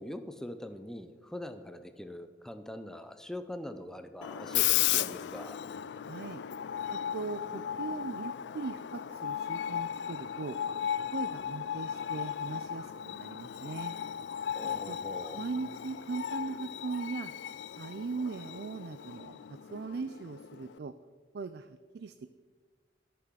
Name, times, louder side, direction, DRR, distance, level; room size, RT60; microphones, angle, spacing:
voice 1, 0.0-5.6 14.5-15.4, left 1 dB, 5° left, 9 dB, 0.5 m, -43 dB
Screech, 4.2-20.8, left 10 dB, 75° left, 0.3 m, -35 dB
voice 2, 6.0-6.4 6.9-10.6 11.1-14.0 14.9-15.0 15.4-17.3 17.8-20.9 21.3-22.3, right 4 dB, 60° right, 12 dB, 0.4 m, -39 dB
13.0 x 6.0 x 6.2 m, 1.5 s
head